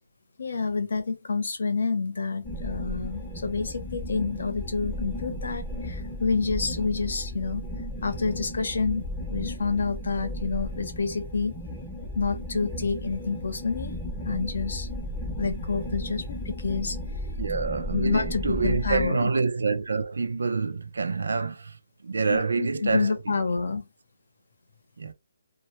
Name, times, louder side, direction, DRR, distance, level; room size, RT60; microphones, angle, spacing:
voice 1, 0.4-7.6 8.0-11.5 12.1-13.9 14.2-14.9 15.4-17.0 17.9-19.3 22.3-23.9, left 4 dB, 70° left, 0.7 m, -28 dB
sound 1, 2.4-19.1, left 1 dB, 5° left, 0.6 m, -35 dB
voice 2, 17.4-21.7 22.0-23.1 25.0-25.1, right 4 dB, 80° right, 0.5 m, -27 dB
2.1 x 2.1 x 2.9 m
hypercardioid pair, 160°, 0 cm